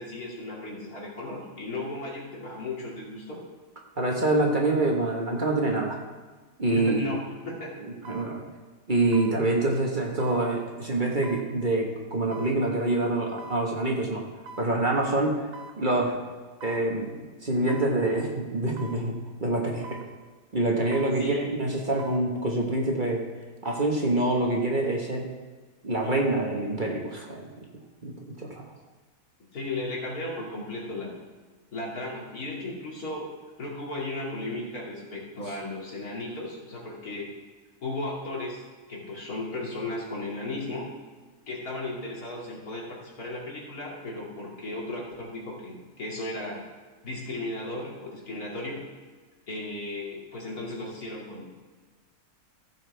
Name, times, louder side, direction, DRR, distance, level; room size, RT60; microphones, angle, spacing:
voice 1, 0.0-3.4 6.7-7.8 21.2-21.5 29.5-31.2 31.7-33.3 33.6-37.3 37.8-38.6 38.9-40.9 41.5-46.6 47.0-48.9 49.5-51.5, left 2 dB, 80° left, -4 dB, 2.9 m, -35 dB
voice 2, 4.0-6.0 6.6-7.1 7.8-8.4 8.9-14.2 14.6-15.5 15.8-16.2 16.6-20.0 20.5-23.2 23.6-25.3 25.8-27.5 28.0-28.6 35.5-35.6, right 2 dB, 35° right, -1 dB, 1.4 m, -26 dB
sound 1, 6.9-7.0 8.0-8.3 9.1-9.4 10.2-10.4 11.2-11.5 12.3-12.5 13.4-13.6 14.5-14.7 15.5-15.8 16.6-16.9 17.7-17.9 18.8-19.0 19.8-20.1 20.9-21.2 22.0-22.2 23.4-23.9 24.3-24.4, right 3 dB, 70° right, 1.2 m, -44 dB
15.0 x 7.3 x 3.4 m, 1.4 s
omnidirectional pair, 1.6 m